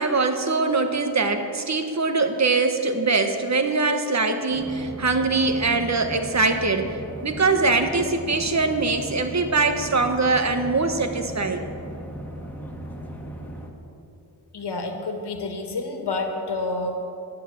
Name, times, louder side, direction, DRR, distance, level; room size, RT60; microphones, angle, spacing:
voice 1, 0.0-6.9 7.2-11.6, right 3 dB, 45° right, 7 dB, 1.2 m, -22 dB
sound 1, 4.5-13.7, equal, 5° left, 1.8 m, -37 dB
voice 2, 14.5-17.0, left 3 dB, 90° left, 4 dB, 1.9 m, -29 dB
15.5 x 11.5 x 7.3 m, 2.7 s
wide cardioid pair, 120°, 39 cm